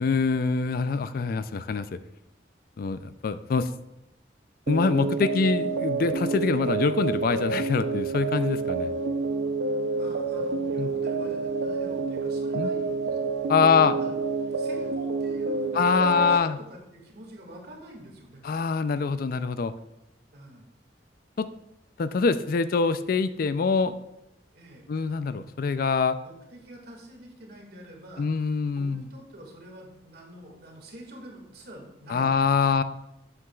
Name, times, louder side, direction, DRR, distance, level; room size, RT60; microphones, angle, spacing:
voice 1, 0.0-1.9 2.8-3.7 4.7-8.9 10.8-10.9 12.5-12.7 13.5-13.9 15.7-16.6 18.4-19.7 21.4-21.5 22.0-23.9 24.9-26.2 28.2-29.0 32.1-32.8, left 5 dB, 55° left, 13 dB, 0.4 m, -24 dB
sound 1, 4.7-16.4, right 4 dB, 80° right, 0.6 m, -28 dB
voice 2, 9.6-18.4 20.3-20.7 24.5-24.9 26.2-32.7, equal, 60° right, 0 dB, 2.0 m, -46 dB
11.5 x 7.9 x 2.3 m, 0.88 s
head